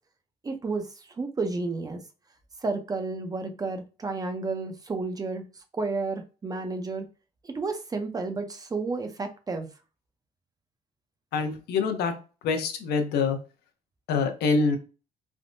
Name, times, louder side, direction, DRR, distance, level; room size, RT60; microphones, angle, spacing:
voice 1, 0.4-2.0 2.6-7.1 7.4-9.7, right 3 dB, 20° right, 0.5 m, -31 dB
voice 2, 11.3-12.1 12.4-13.4 14.1-14.8, left 4 dB, 75° left, 0.7 m, -25 dB
3.4 x 2.0 x 2.5 m
cardioid pair, 110°, 17 cm